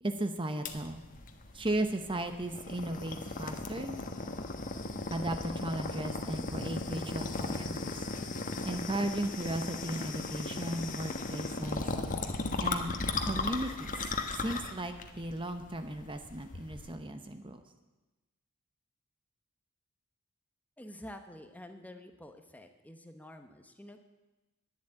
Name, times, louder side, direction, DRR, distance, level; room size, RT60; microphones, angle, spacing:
voice 1, 0.0-1.0 1.5-4.0 5.1-8.0 8.6-11.8 12.6-13.0 13.2-13.9 14.4-17.6, right 1 dB, 20° right, 8 dB, 0.8 m, -36 dB
sound 1, 0.7-16.9, left 3 dB, 35° left, 1.2 m, -37 dB
voice 2, 20.8-24.0, left 1 dB, 5° left, 7 dB, 0.9 m, -49 dB
11.0 x 10.5 x 8.8 m, 1.1 s
head